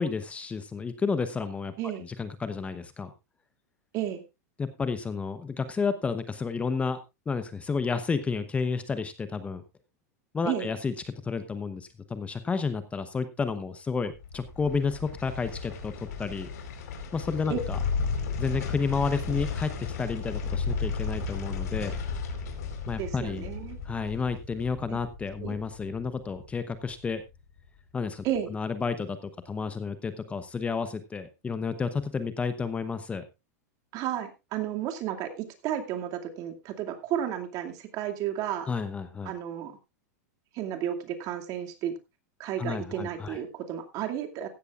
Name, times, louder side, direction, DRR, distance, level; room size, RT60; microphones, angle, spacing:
voice 1, 0.0-1.7 2.0-3.1 4.6-7.0 7.3-9.6 10.3-15.9 16.2-16.5 17.1-17.8 18.4-21.9 22.9-23.5 23.8-27.2 27.9-28.2 28.5-33.2 38.7-39.3 42.6-43.4, left 5 dB, 15° left, 11 dB, 0.9 m, -31 dB
sound 1, 14.1-27.3 27.6-27.7, left 5 dB, 70° left, 4.4 m, -34 dB
voice 2, 23.0-23.8 24.9-25.0 25.4-25.5 28.2-28.5 33.9-38.7 39.2-39.7 40.5-42.0 42.4-44.5, right 10 dB, 40° right, 5 dB, 2.4 m, -32 dB
15.5 x 13.0 x 2.5 m, 0.25 s
hypercardioid pair, 130°, 9 cm